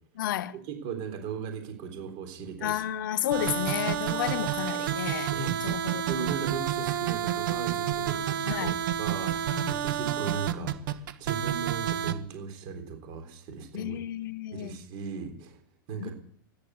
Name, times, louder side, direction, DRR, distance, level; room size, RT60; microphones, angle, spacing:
voice 1, 0.2-0.6 2.6-5.3 5.6-6.3 8.5-8.8 9.5-9.8 10.6-10.8 13.7-14.8 16.0-16.1, left 12 dB, 70° left, 0.8 m, -32 dB
voice 2, 0.7-2.8 3.4-3.5 5.3-5.7 6.1-14.0 14.5-15.6 15.9-16.1, right 6 dB, 40° right, 3.8 m, -37 dB
sound 1, 3.3-12.1, right 10 dB, 65° right, 1.5 m, -29 dB
14.0 x 10.5 x 8.2 m
supercardioid pair, 150°, 11 cm